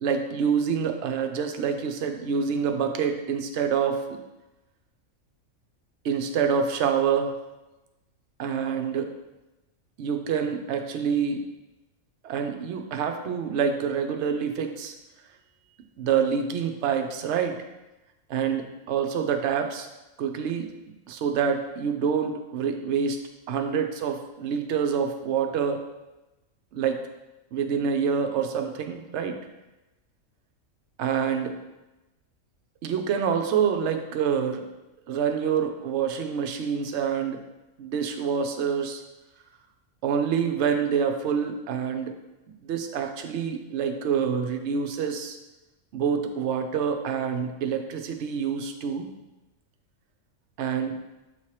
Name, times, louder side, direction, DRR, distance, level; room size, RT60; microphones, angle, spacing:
voice 1, 0.0-4.2 6.0-7.4 8.4-9.1 10.0-11.4 12.2-14.9 16.0-17.6 18.3-19.9 20.2-20.7 21.1-23.2 23.5-25.8 26.7-27.0 27.5-29.4 31.0-31.5 32.8-34.6 35.1-37.4 37.8-39.0 40.0-42.1 42.6-45.4 45.9-49.1 50.6-51.0, right 7 dB, 60° right, 6 dB, 0.9 m, -26 dB
7.8 x 2.9 x 4.7 m, 1.0 s
omnidirectional pair, 1.5 m